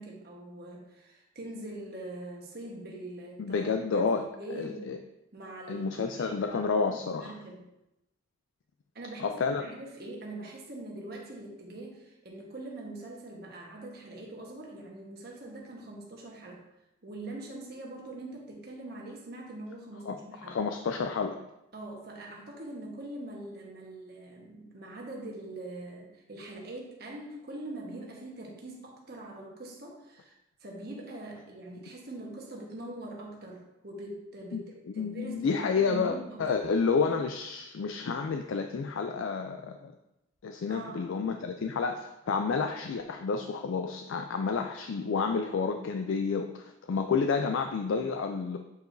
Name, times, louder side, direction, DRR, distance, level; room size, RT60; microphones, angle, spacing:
voice 1, 0.0-5.0 5.3-6.6 7.0-7.6 8.9-16.6 17.0-20.6 21.7-30.3 30.6-36.4 40.7-41.3, right 1 dB, 50° right, -1 dB, 1.2 m, -43 dB
voice 2, 3.4-4.2 4.6-5.0 5.7-7.4 9.2-9.7 20.1-21.4 34.5-34.6 35.0-39.9 40.4-48.6, left 5 dB, 70° left, 5 dB, 0.4 m, -30 dB
8.2 x 4.7 x 2.6 m, 0.91 s
head